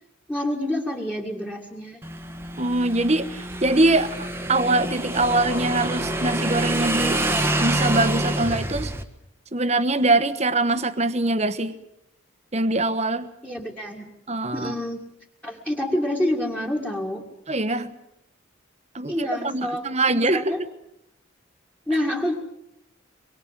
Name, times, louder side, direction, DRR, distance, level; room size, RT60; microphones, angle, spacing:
voice 1, 0.3-2.0 13.4-14.1 14.5-15.0 15.4-17.2 19.1-20.6 21.9-22.3, left 1 dB, 5° left, 0 dB, 2.1 m, -27 dB
Motorcycle / Engine, 2.0-9.0, right 1 dB, 10° right, 1.3 m, -27 dB
voice 2, 2.6-8.9 9.5-11.7 12.5-13.3 14.3-14.7 17.5-18.0 18.9-20.5, right 2 dB, 30° right, 13 dB, 1.2 m, -23 dB
25.5 x 22.0 x 7.5 m, 0.79 s
head